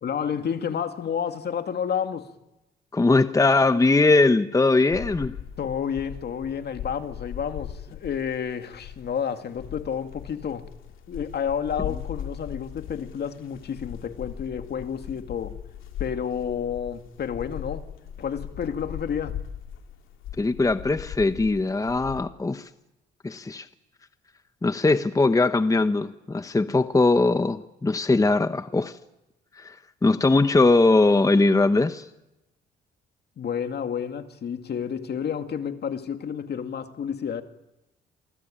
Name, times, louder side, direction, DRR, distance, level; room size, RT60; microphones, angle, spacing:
voice 1, 0.0-2.3 5.6-10.7 11.1-15.6 16.0-17.9 18.2-19.4 33.4-37.4, left 7 dB, 55° left, 2.3 m, -30 dB
voice 2, 2.9-5.4 20.4-22.7 23.2-23.7 24.6-29.0 29.5-32.1, left 3 dB, 15° left, 1.0 m, -21 dB
sound 1, 4.9-22.2, left 10 dB, 85° left, 2.5 m, -39 dB
27.5 x 19.5 x 8.9 m
cardioid pair, 90°, 20 cm